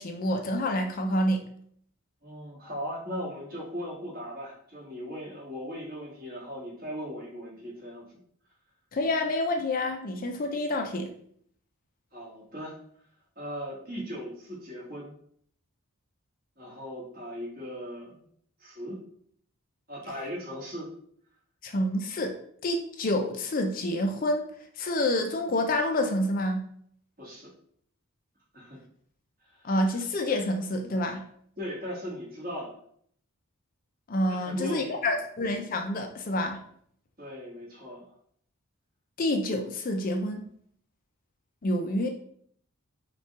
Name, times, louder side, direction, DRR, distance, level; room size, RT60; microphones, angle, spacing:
voice 1, 0.0-1.4 8.9-11.1 21.6-22.3 22.6-24.4 24.8-26.7 29.6-31.2 34.1-36.6 39.2-40.4 41.6-42.1, left 1 dB, 40° left, 4 dB, 0.4 m, -28 dB
voice 2, 2.2-8.1 12.1-12.7 13.3-15.1 16.6-18.2 18.6-19.0 19.9-20.9 27.2-27.5 28.5-28.8 29.5-29.6 31.6-32.7 34.3-35.2 37.2-38.0, equal, 40° right, -5 dB, 1.6 m, -38 dB
5.3 x 2.3 x 3.6 m, 0.64 s
head